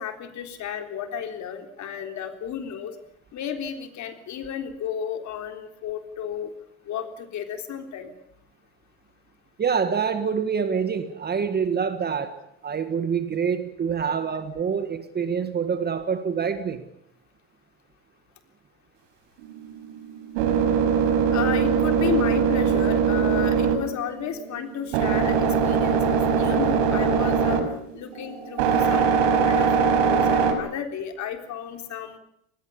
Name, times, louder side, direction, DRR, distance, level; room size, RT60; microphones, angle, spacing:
voice 1, 0.0-3.0 3.3-6.5 6.9-8.1 21.3-27.6 27.9-32.2, left 8 dB, 40° left, 3.8 m, -33 dB
voice 2, 9.6-16.8, right 6 dB, 20° right, 1.7 m, -26 dB
sound 1, 19.4-30.5, right 6 dB, 70° right, 5.3 m, -22 dB
25.5 x 20.0 x 7.1 m
supercardioid pair, 130°, 42 cm